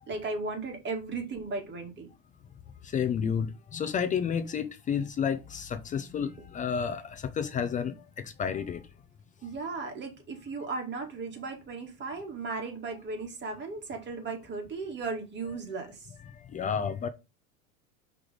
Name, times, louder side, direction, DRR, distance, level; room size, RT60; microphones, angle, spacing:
voice 1, 0.1-2.1 9.4-16.0, right 3 dB, 25° right, 2.2 m, -36 dB
voice 2, 2.8-8.9 16.3-17.1, left 7 dB, 20° left, 0.5 m, -31 dB
5.8 x 3.4 x 5.0 m
hypercardioid pair, 115°, 41 cm